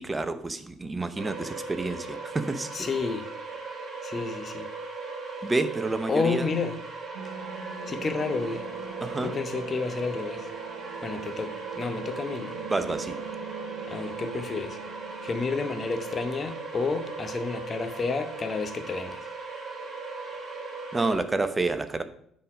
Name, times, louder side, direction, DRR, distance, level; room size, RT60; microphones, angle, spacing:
voice 1, 0.0-2.9 5.4-6.5 9.0-9.3 12.7-13.2 20.9-22.0, right 3 dB, 20° right, 0.8 m, -29 dB
sound 1, 1.2-21.2, right 3 dB, 35° right, 1.9 m, -38 dB
voice 2, 2.7-3.3 4.0-4.7 6.1-6.8 7.9-8.6 9.2-10.5 11.0-12.6 13.9-14.8 15.2-19.3, left 4 dB, 35° left, 0.9 m, -30 dB
sound 2, 7.1-16.2, right 5 dB, 60° right, 1.3 m, -42 dB
9.4 x 4.1 x 5.0 m
figure-of-eight pair, 50°, 0 cm